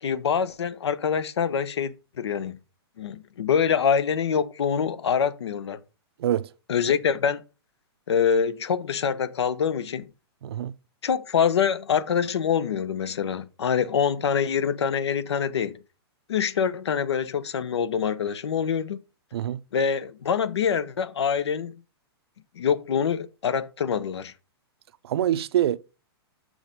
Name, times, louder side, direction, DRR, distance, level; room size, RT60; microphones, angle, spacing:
voice 1, 0.0-1.9 2.2-2.6 3.0-5.8 6.7-7.4 8.1-10.0 11.0-15.8 16.3-19.0 19.7-21.7 22.6-24.3, left 7 dB, 90° left, 0.9 m, -25 dB
voice 2, 25.1-25.8, right 11 dB, 70° right, 0.6 m, -24 dB
6.4 x 6.3 x 5.2 m
hypercardioid pair, 140°, 14 cm